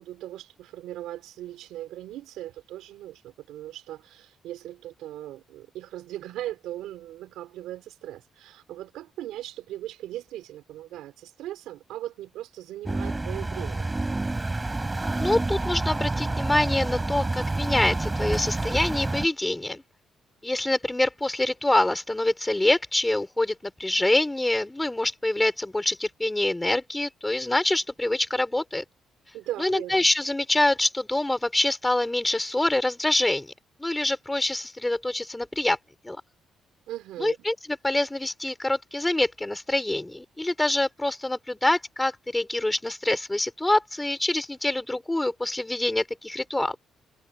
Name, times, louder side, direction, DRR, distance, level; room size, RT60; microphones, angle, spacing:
voice 1, 0.0-13.9 29.3-30.1 36.9-37.4, right 13 dB, 90° right, 4.2 m, -38 dB
sound 1, 12.9-19.3, right 2 dB, 15° right, 7.1 m, -28 dB
voice 2, 15.1-19.8 20.4-28.8 29.6-33.5 33.8-35.8 36.0-36.2 37.2-46.7, left 1 dB, 10° left, 4.8 m, -25 dB
cardioid pair, 90°, 0 cm